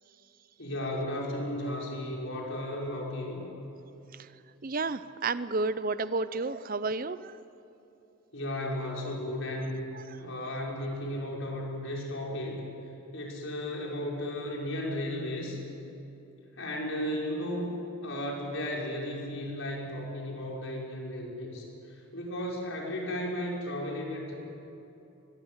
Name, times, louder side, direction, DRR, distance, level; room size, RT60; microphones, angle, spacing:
voice 1, 0.6-3.4 8.3-9.8 10.2-12.6 13.1-15.6 16.6-17.7 18.0-21.6 22.1-24.3, left 1 dB, 60° left, -2 dB, 6.0 m, -34 dB
voice 2, 4.6-7.4 8.6-8.7 9.0-9.1 9.9-10.2, right 3 dB, 40° right, 14 dB, 0.6 m, -32 dB
24.0 x 21.5 x 8.1 m, 2.9 s
head